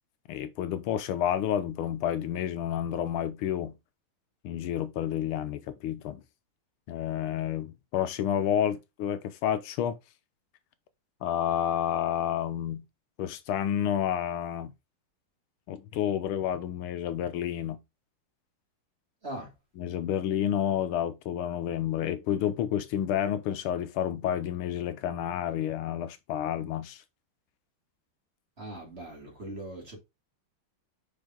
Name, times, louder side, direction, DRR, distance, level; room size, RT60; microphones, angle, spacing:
voice 1, 0.3-3.7 4.4-6.2 6.9-10.0 11.2-12.8 13.2-14.7 15.7-17.8 19.7-27.0, left 10 dB, 80° left, 1.6 m, -30 dB
voice 2, 28.6-30.0, right 1 dB, 30° right, 3.1 m, -40 dB
5.5 x 5.4 x 3.8 m
omnidirectional pair, 2.4 m